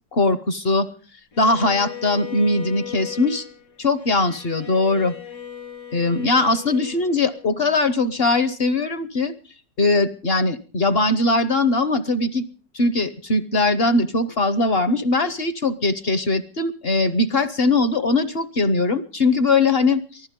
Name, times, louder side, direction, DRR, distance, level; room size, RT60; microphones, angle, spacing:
voice 1, 0.1-0.9 1.4-3.5 3.8-5.1 5.9-9.3 9.8-12.5 12.7-20.2, left 2 dB, 45° left, 13 dB, 0.9 m, -20 dB
Bowed string instrument, 1.3-7.6, left 9 dB, 80° left, 5.4 m, -38 dB
23.5 x 15.0 x 3.7 m, 0.39 s
omnidirectional pair, 1.9 m